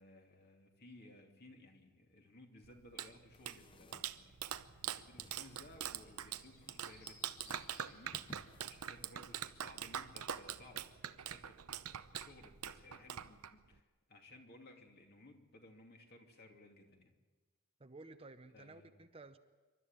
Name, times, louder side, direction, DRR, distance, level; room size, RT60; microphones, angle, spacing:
voice 1, 0.0-7.3 7.8-8.1 8.6-17.1 18.5-18.9, left 1 dB, 45° left, 2 dB, 2.8 m, -59 dB
Clapping, 2.6-13.8, right 9 dB, 80° right, 0.8 m, -44 dB
sound 1, 3.3-9.5, left 2 dB, 20° left, 0.6 m, -62 dB
sound 2, 6.0-8.6 8.9-9.0 9.3-9.5 9.9-10.1 10.4-10.7 10.9-11.1, left 2 dB, 90° left, 7.3 m, -64 dB
voice 2, 17.8-19.4, right 3 dB, 25° right, 9 dB, 0.7 m, -54 dB
27.5 x 12.5 x 9.0 m, 1.3 s
head